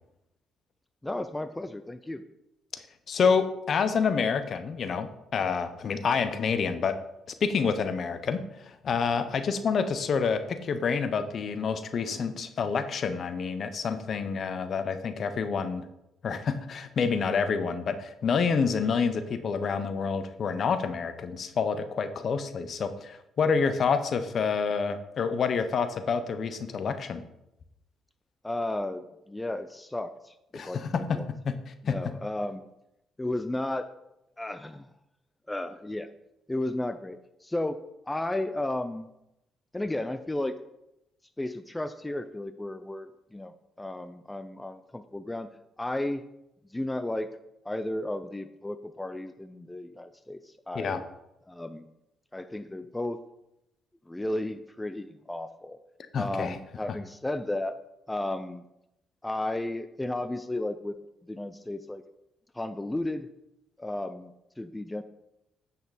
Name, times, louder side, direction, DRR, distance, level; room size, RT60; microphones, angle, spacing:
voice 1, 1.0-2.2 28.4-31.3 31.8-32.7 33.2-33.9 34.4-34.9 35.5-36.1 36.5-37.8 38.1-39.1 39.7-40.6 41.4-43.5 43.8-45.5 45.8-46.3 46.7-47.3 47.7-51.0 51.5-51.9 52.3-53.2 54.1-55.8 56.2-57.7 58.1-58.6 59.2-61.0 61.2-62.0 62.5-63.3 63.8-65.0, left 1 dB, 10° left, 10 dB, 0.4 m, -33 dB
voice 2, 3.1-7.0 7.4-8.4 8.8-15.8 16.2-27.2 30.5-31.2 31.5-31.9 50.7-51.0 56.1-56.6, left 5 dB, 55° left, 10 dB, 0.8 m, -28 dB
9.2 x 5.7 x 4.2 m, 0.87 s
cardioid pair, 90°, 0 cm